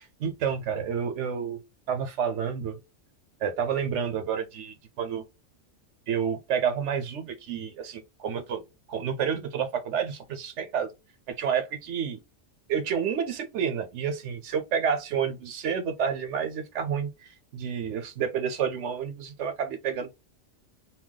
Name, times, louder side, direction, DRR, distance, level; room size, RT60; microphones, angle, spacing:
voice 1, 0.2-1.6 1.9-2.8 3.4-5.2 6.1-8.6 8.9-10.9 11.3-12.2 12.7-20.1, right 7 dB, 75° right, 0.9 m, -29 dB
2.3 x 2.2 x 3.6 m
omnidirectional pair, 1.3 m